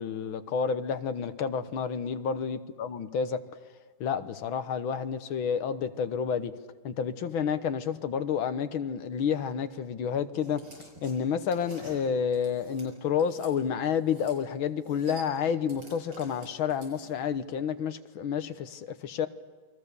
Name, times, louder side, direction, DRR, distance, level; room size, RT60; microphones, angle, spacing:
voice 1, 0.0-3.4 4.0-6.5 6.8-19.3, left 7 dB, 70° left, 1.9 m, -30 dB
sound 1, 10.4-13.5 14.0-14.4 14.7-17.3, right 2 dB, 55° right, 7.7 m, -49 dB
29.5 x 22.0 x 6.9 m
omnidirectional pair, 2.3 m